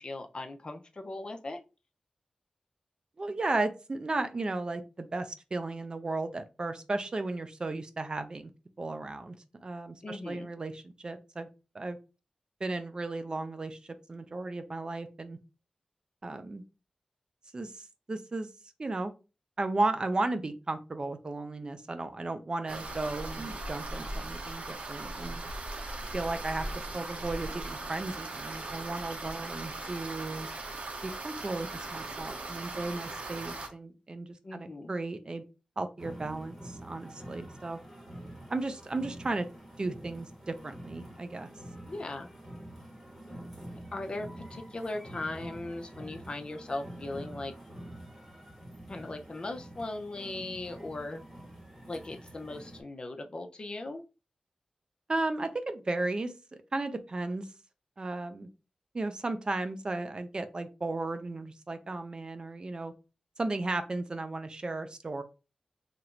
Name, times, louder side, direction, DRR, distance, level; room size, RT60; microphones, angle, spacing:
voice 1, 0.0-1.6 10.0-10.5 34.4-34.9 41.9-42.3 43.9-47.5 48.9-51.3 51.9-54.0, left 2 dB, 40° left, 5 dB, 0.5 m, -38 dB
voice 2, 3.2-8.5 8.8-11.5 11.7-12.0 12.6-15.4 16.2-16.6 17.5-18.5 18.8-19.1 19.6-25.5 26.1-26.7 26.9-30.5 31.0-35.4 35.8-37.8 38.5-39.4 39.8-41.5 55.1-56.3 56.7-57.5 58.0-58.5 58.9-62.9 63.4-65.2, right 2 dB, 35° right, 8 dB, 0.4 m, -35 dB
sound 1, 22.7-33.7, right 2 dB, 65° right, 0.8 m, -39 dB
sound 2, 36.0-52.8, right 1 dB, 5° right, 1.5 m, -47 dB
3.0 x 2.5 x 4.3 m, 0.31 s
wide cardioid pair, 100°, 2 cm